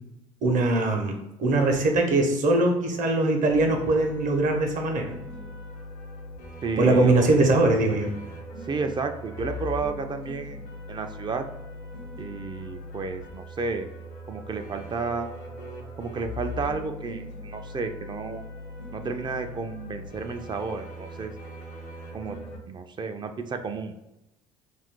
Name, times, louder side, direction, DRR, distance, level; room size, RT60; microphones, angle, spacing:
voice 1, 0.4-5.1 6.8-8.1, right 2 dB, 50° right, 3 dB, 0.8 m, -22 dB
sound 1, 3.5-22.6, left 1 dB, 75° left, 0.9 m, -40 dB
voice 2, 6.6-7.1 8.6-10.6 10.9-11.4 12.2-13.9 14.3-15.3 16.0-18.5 18.9-21.3 22.1-22.4 22.7-23.9, right 4 dB, 25° right, 7 dB, 0.4 m, -32 dB
2.5 x 2.4 x 3.6 m, 0.91 s
hypercardioid pair, 70°, 17 cm